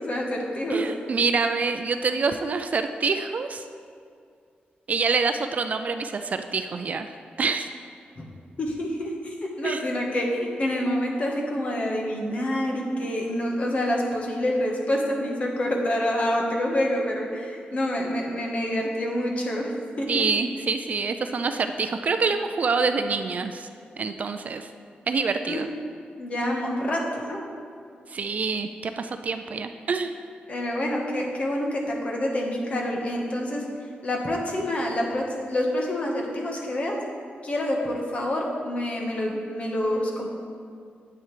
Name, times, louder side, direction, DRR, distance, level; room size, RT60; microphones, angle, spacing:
voice 1, 0.0-0.9 8.2-8.3 8.6-20.2 25.4-25.6 26.2-27.4 30.5-33.6 34.0-37.0 37.4-40.3, left 1 dB, 40° left, -1 dB, 1.2 m, -27 dB
voice 2, 0.7-3.6 4.9-7.1 7.4-7.7 9.6-9.8 20.1-23.7 24.0-24.7 25.1-25.7 28.1-30.1, right 4 dB, 45° right, 8 dB, 0.3 m, -26 dB
9.8 x 8.7 x 3.2 m, 2.3 s
wide cardioid pair, 165°, 4 cm